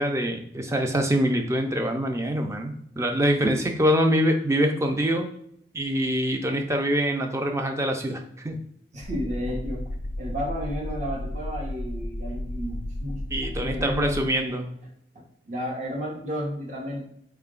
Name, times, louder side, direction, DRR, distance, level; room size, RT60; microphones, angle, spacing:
voice 1, 0.0-5.3 5.7-8.6 13.3-14.7, equal, 15° right, 4 dB, 0.4 m, -24 dB
voice 2, 8.9-9.8 10.2-13.2 13.6-14.3 15.1-17.0, equal, 40° right, -1 dB, 0.8 m, -32 dB
sound 1, 9.0-14.3, left 1 dB, 55° left, 0.4 m, -33 dB
4.0 x 2.2 x 3.6 m, 0.72 s
head